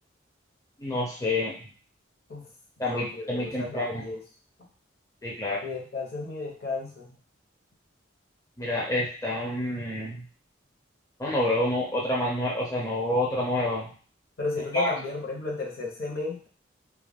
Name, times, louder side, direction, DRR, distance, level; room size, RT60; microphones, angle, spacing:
voice 1, 0.8-1.6 2.8-4.0 5.2-5.6 8.6-10.3 11.2-13.9 14.7-14.9, left 1 dB, 15° left, -4 dB, 0.4 m, -28 dB
voice 2, 2.9-4.2 5.6-7.2 14.4-16.5, left 3 dB, 55° left, -1 dB, 0.7 m, -33 dB
2.3 x 2.1 x 3.4 m, 0.41 s
head